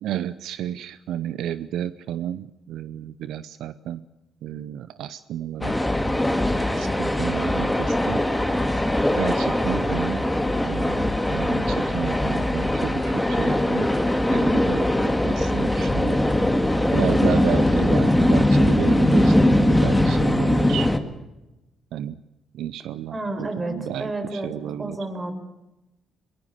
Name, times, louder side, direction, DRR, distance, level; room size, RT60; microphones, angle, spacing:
voice 1, 0.0-4.0 4.4-6.2 6.7-8.2 8.5-8.8 9.2-10.3 10.6-12.9 13.3-14.0 14.3-14.9 15.2-16.3 16.9-20.9 21.9-22.2 22.5-25.0, right 11 dB, 80° right, 15 dB, 0.7 m, -32 dB
sound 1, 5.6-21.0, left 1 dB, 5° left, 2.0 m, -21 dB
voice 2, 23.1-24.5 24.8-25.3, right 2 dB, 25° right, 7 dB, 4.9 m, -30 dB
23.5 x 20.5 x 6.8 m, 0.97 s
cardioid pair, 90°, 0 cm